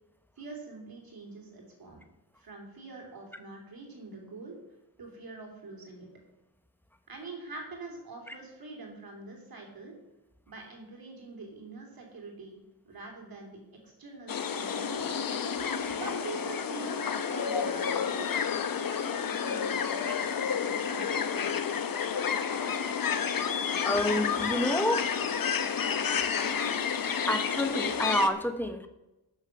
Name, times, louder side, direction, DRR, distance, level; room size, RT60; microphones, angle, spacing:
voice 1, 0.4-2.0 2.4-4.5 5.0-6.1 7.1-10.0 10.5-15.3 15.9-18.4 18.8-20.3 20.5-21.8, right 3 dB, 55° right, 0 dB, 3.2 m, -45 dB
sound 1, 14.3-28.3, left 7 dB, 55° left, 0.9 m, -30 dB
voice 2, 23.8-25.1 27.3-28.9, left 1 dB, 5° left, 7 dB, 0.9 m, -28 dB
12.0 x 7.0 x 5.9 m, 0.97 s
wide cardioid pair, 155°, 42 cm